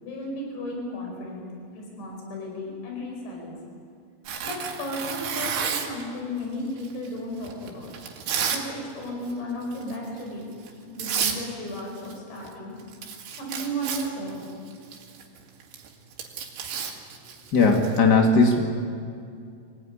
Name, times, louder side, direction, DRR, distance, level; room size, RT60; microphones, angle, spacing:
voice 1, 0.0-1.5 1.7-3.6 4.4-7.9 8.5-10.5 10.7-12.8 13.4-14.5 17.2-17.4, equal, 80° left, 0 dB, 7.3 m, -34 dB
Tearing, 4.3-6.0 6.8-8.7 9.0-9.3 9.7-10.0 10.7-10.8 11.0-11.4 11.7-12.5 12.8-18.0, right 7 dB, 90° right, 4.5 m, -31 dB
voice 2, 17.5-18.6, left 3 dB, 55° left, 2 dB, 1.1 m, -18 dB
25.0 x 18.0 x 9.9 m, 2.3 s
omnidirectional pair, 5.0 m